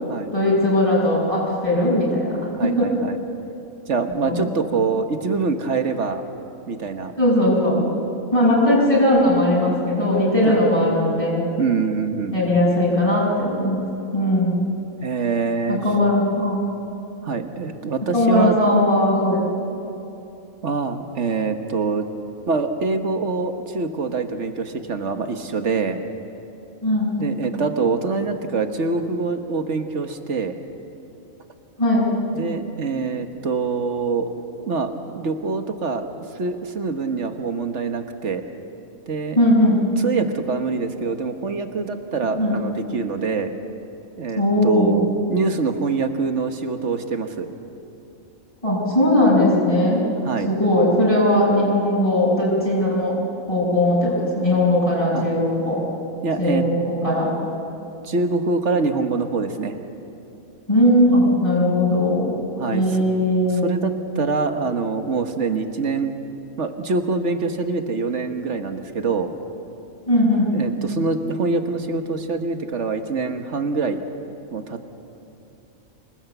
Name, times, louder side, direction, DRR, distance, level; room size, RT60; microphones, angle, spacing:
voice 1, 0.3-2.9 4.2-4.5 7.2-7.8 8.3-11.5 12.3-13.8 14.1-14.5 15.7-16.7 18.1-19.4 26.8-27.1 31.8-32.1 39.3-39.8 42.4-42.6 44.3-45.0 48.6-50.0 50.5-53.2 53.5-55.8 56.4-57.3 60.7-62.3 62.7-63.7 70.1-70.6, left 1 dB, 25° left, -7 dB, 6.4 m, -19 dB
voice 2, 2.6-3.2 3.8-6.2 6.7-7.1 10.4-10.6 11.6-12.4 15.0-15.8 17.2-18.6 20.6-22.1 22.5-26.0 27.2-30.5 32.3-34.3 34.7-36.1 36.3-38.4 39.1-39.4 40.0-43.5 44.2-47.5 50.2-50.5 55.1-55.3 56.2-56.6 58.0-59.8 62.6-62.8 63.6-66.1 66.6-69.3 70.5-74.0 74.5-74.9, right 4 dB, 60° right, 6 dB, 1.6 m, -25 dB
26.5 x 19.5 x 8.1 m, 2.8 s
omnidirectional pair, 1.4 m